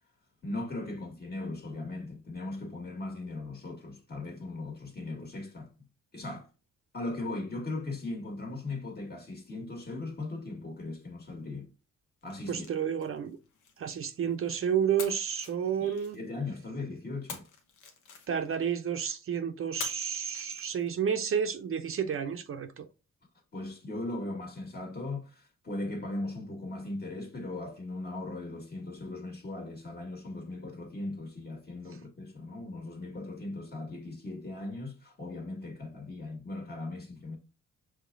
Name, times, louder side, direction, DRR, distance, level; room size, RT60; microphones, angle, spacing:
voice 1, 0.4-5.7 6.1-6.5 6.9-11.7 12.2-12.7 15.8-17.5 23.5-37.4, left 2 dB, 30° left, 1.7 m, -38 dB
sound 1, 12.2-14.5 15.0-16.5 17.3-18.7 19.8-21.1, left 6 dB, 90° left, 1.1 m, -46 dB
voice 2, 12.5-13.4 13.8-16.2 18.3-22.9, right 8 dB, 45° right, 0.6 m, -31 dB
5.5 x 3.5 x 2.5 m
cardioid pair, 90°, 30 cm